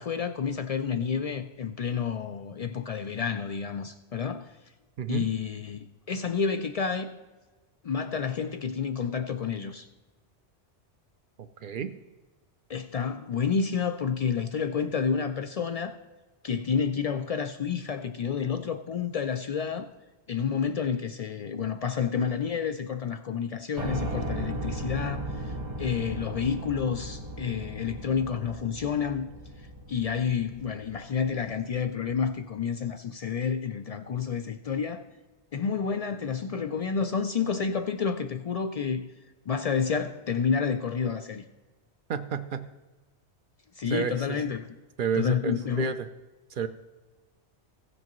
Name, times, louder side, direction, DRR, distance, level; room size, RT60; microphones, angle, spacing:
voice 1, 0.0-4.5 5.1-7.1 7.8-9.9 12.7-15.9 16.4-19.9 20.3-29.3 29.9-35.0 35.5-39.1 39.5-41.4 43.8-44.7 45.1-45.9, left 6 dB, 65° left, 0.3 m, -29 dB
voice 2, 5.0-5.3 11.6-11.9 42.1-42.7 43.9-44.4 45.0-46.0 46.5-46.7, right 7 dB, 60° right, 0.6 m, -30 dB
Piano, 23.8-31.8, right 1 dB, 40° right, 1.4 m, -36 dB
16.0 x 8.0 x 3.1 m
omnidirectional pair, 1.2 m